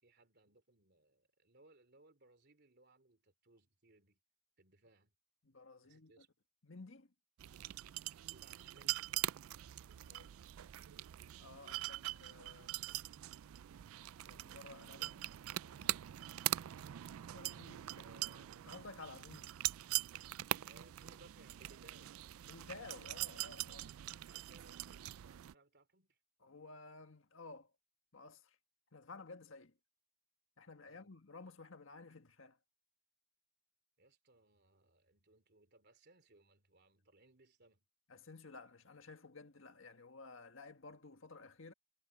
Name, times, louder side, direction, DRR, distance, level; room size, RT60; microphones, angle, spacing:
voice 1, 0.0-4.2 4.6-5.1 5.8-6.3 8.3-9.1 18.0-18.7 20.6-22.2 24.3-26.2 30.9-31.1 34.0-37.9, right 2 dB, 50° right, 3.6 m, -66 dB
voice 2, 5.4-6.2 6.6-7.1 9.9-10.3 11.4-13.0 14.2-15.2 15.5-16.0 17.3-19.5 22.4-23.9 26.4-27.7 28.1-28.5 28.9-29.7 30.6-32.6 38.1-41.7, left 3 dB, 65° left, 1.8 m, -54 dB
sound 1, 7.4-25.5, right 14 dB, 85° right, 0.4 m, -43 dB
head